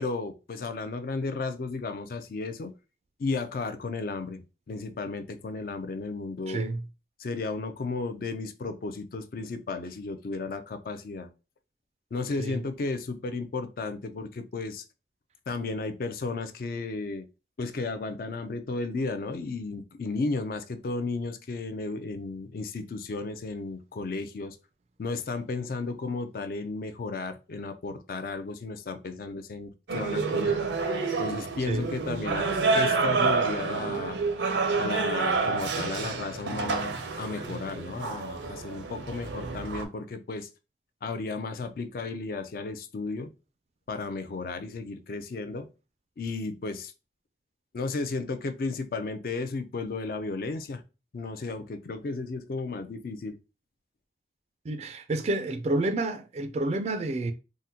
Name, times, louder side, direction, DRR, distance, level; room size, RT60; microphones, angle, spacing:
voice 1, 0.0-2.7 3.2-6.6 7.2-11.3 12.1-14.8 15.5-17.3 17.6-24.6 25.0-30.6 31.2-34.2 34.8-40.5 41.0-43.3 43.9-45.7 46.2-46.9 47.7-50.8 51.1-53.4, left 3 dB, 50° left, 0.4 m, -34 dB
voice 2, 6.5-6.8 12.4-12.6 31.7-31.9 54.7-57.3, right 2 dB, 35° right, 0.3 m, -29 dB
sound 1, 29.9-39.9, right 4 dB, 85° right, 0.6 m, -28 dB
3.7 x 2.1 x 2.7 m
head